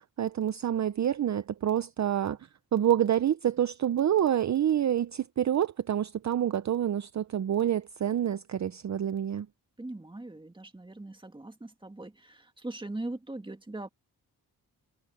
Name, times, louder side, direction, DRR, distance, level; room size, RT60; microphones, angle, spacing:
voice 1, 0.0-2.4 2.7-9.5, right 10 dB, 45° right, 0.6 m, -27 dB
voice 2, 9.8-13.9, right 2 dB, 10° right, 2.0 m, -40 dB
wide cardioid pair, 115°, 39 cm